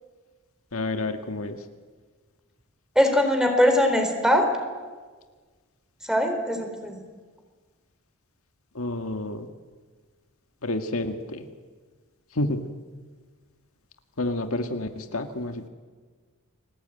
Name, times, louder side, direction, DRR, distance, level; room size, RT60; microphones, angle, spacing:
voice 1, 0.7-1.6 8.8-9.5 10.6-11.4 12.4-12.6 14.2-15.7, left 2 dB, 70° left, 6 dB, 1.9 m, -29 dB
voice 2, 3.0-4.5 6.1-7.0, equal, 5° right, 5 dB, 4.1 m, -21 dB
30.0 x 20.5 x 9.3 m, 1.5 s
head